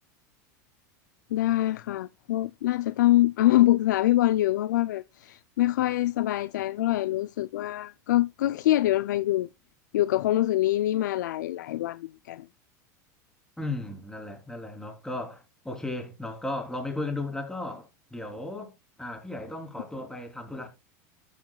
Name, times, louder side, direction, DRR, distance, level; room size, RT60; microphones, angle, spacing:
voice 1, 1.3-9.5 9.9-12.5, left 15 dB, 85° left, 0.4 m, -24 dB
voice 2, 13.6-18.7 19.0-20.7, left 2 dB, 5° left, 3.3 m, -35 dB
13.5 x 7.3 x 2.3 m
hypercardioid pair, 100°, 10 cm